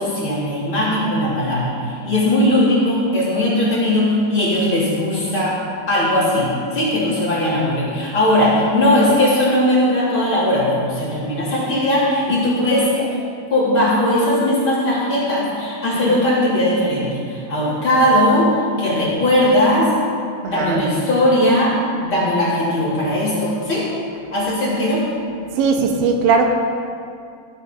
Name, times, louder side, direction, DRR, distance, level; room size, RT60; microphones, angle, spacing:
voice 1, 0.0-5.6 5.9-13.1 13.5-18.5 18.8-19.9 20.4-23.9 24.3-25.0, left 1 dB, 30° left, -8 dB, 3.5 m, -18 dB
voice 2, 25.6-26.5, right 5 dB, 90° right, 3 dB, 3.5 m, -17 dB
16.5 x 9.5 x 5.3 m, 2.3 s
omnidirectional pair, 5.0 m